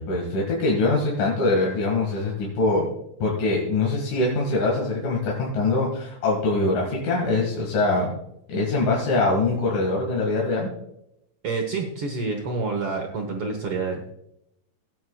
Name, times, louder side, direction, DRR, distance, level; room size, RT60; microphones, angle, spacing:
voice 1, 0.0-2.9 3.2-8.1 8.5-10.7, left 2 dB, 65° left, -3 dB, 3.4 m, -23 dB
voice 2, 11.4-14.0, right 4 dB, 70° right, 2 dB, 1.3 m, -28 dB
17.0 x 9.3 x 2.3 m, 0.78 s
omnidirectional pair, 4.2 m